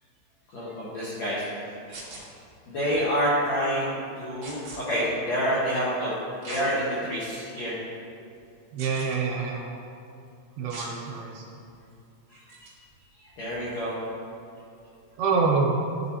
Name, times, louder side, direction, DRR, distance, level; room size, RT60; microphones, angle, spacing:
voice 1, 0.5-2.0 2.7-7.8 12.3-12.7 13.2-14.0, equal, 75° left, -9 dB, 1.6 m, -28 dB
sound 1, 1.9-2.2 4.4-4.8 6.4-6.7 7.3-7.4 8.8-9.2 10.7-10.9 12.5-12.7, right 2 dB, 55° right, 1.5 m, -40 dB
voice 2, 8.7-9.6 10.6-11.4 15.2-15.8, right 4 dB, 75° right, -1 dB, 2.5 m, -26 dB
12.0 x 4.0 x 2.8 m, 2.5 s
omnidirectional pair, 4.7 m